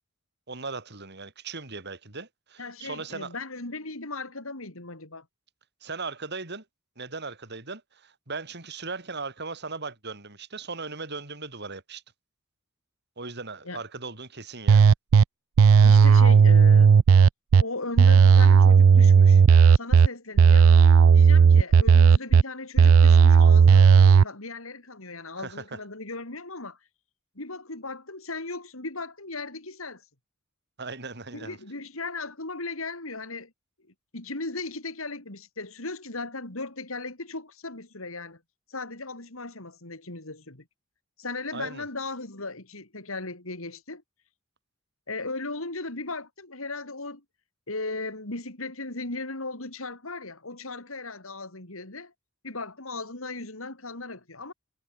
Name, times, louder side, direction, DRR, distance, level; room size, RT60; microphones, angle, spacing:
voice 1, 0.5-3.4 5.8-6.6 7.0-12.0 13.2-14.9 25.4-25.8 30.8-31.6 41.5-41.8, right 4 dB, 55° right, 4.7 m, -38 dB
voice 2, 2.6-5.3 13.6-13.8 15.8-17.0 17.6-19.4 19.7-20.7 21.1-26.8 27.3-30.0 31.3-33.5 34.1-38.4 38.7-40.7 41.2-44.0 45.1-47.2 47.7-52.1 52.4-54.5, left 3 dB, 80° left, 4.3 m, -37 dB
sound 1, 14.7-15.2 15.6-17.6 18.0-20.1 20.4-22.4 22.8-24.2, right 6 dB, 80° right, 0.4 m, -14 dB
head